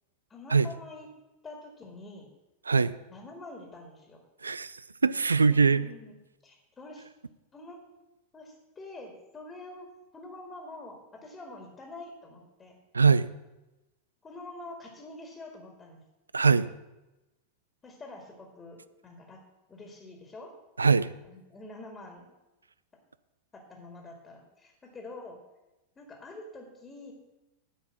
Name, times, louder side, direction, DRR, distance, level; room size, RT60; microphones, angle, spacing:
voice 1, 0.3-1.1 1.4-2.3 3.1-4.2 5.6-7.1 7.5-7.8 8.3-9.9 10.1-12.8 14.2-16.0 17.8-19.4 19.7-20.5 21.2-22.3 23.5-25.4 26.0-27.1, left 2 dB, 20° left, 2 dB, 1.9 m, -46 dB
voice 2, 4.4-5.9 12.9-13.3 16.3-16.7 20.8-21.1, right 5 dB, 75° right, 16 dB, 0.4 m, -22 dB
9.9 x 5.5 x 7.2 m, 1.0 s
figure-of-eight pair, 90°, 0 cm